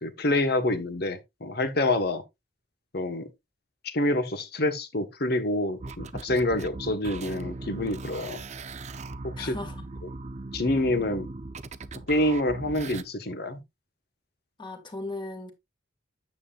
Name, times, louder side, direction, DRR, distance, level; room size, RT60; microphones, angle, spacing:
voice 1, 0.0-2.2 2.9-3.3 3.8-8.4 9.2-9.6 10.5-11.3 12.1-13.6, left 1 dB, 55° left, 1.3 m, -27 dB
sound 1, 5.8-13.0, right 2 dB, 35° right, 0.6 m, -39 dB
voice 2, 9.4-9.9 14.6-15.5, left 2 dB, 25° left, 1.9 m, -37 dB
9.4 x 7.5 x 2.4 m
head